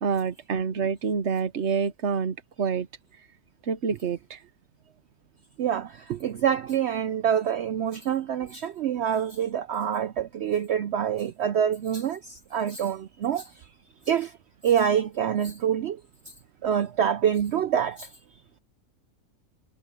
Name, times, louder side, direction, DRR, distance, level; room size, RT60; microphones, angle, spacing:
voice 1, 0.0-2.9 3.7-4.4, right 6 dB, 50° right, 1.3 m, -27 dB
voice 2, 5.6-13.5 14.1-14.3 14.6-16.0 16.6-18.1, right 8 dB, 70° right, 0.6 m, -26 dB
omnidirectional pair, 1.6 m